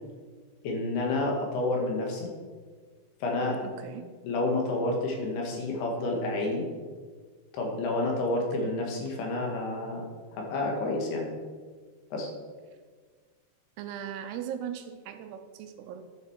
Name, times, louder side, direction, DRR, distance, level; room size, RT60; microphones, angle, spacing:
voice 1, 0.6-2.3 3.2-3.6 4.2-6.7 7.5-10.0 10.3-11.3 12.1-12.3, left 2 dB, 75° left, 0 dB, 3.7 m, -29 dB
voice 2, 3.6-4.1 8.4-8.8 13.8-16.1, right 9 dB, 90° right, 8 dB, 2.8 m, -39 dB
12.0 x 7.1 x 4.6 m, 1.5 s
omnidirectional pair, 4.6 m